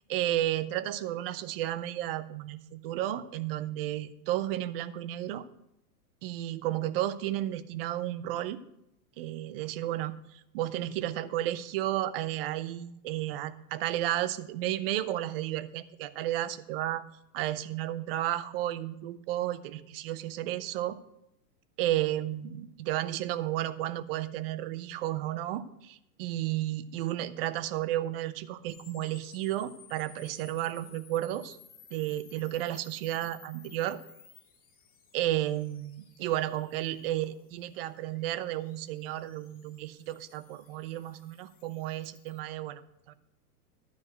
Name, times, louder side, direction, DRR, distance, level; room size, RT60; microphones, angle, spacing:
voice 1, 0.1-5.5 6.2-8.6 9.2-10.2 10.5-17.0 17.3-21.0 21.8-31.6 31.9-34.0 35.1-42.8 43.1-43.2, right 13 dB, 35° right, 15 dB, 0.5 m, -32 dB
sound 1, 28.7-42.4, left 7 dB, 15° left, 1.5 m, -57 dB
12.0 x 4.7 x 7.7 m, 0.83 s
hypercardioid pair, 130°, 50 cm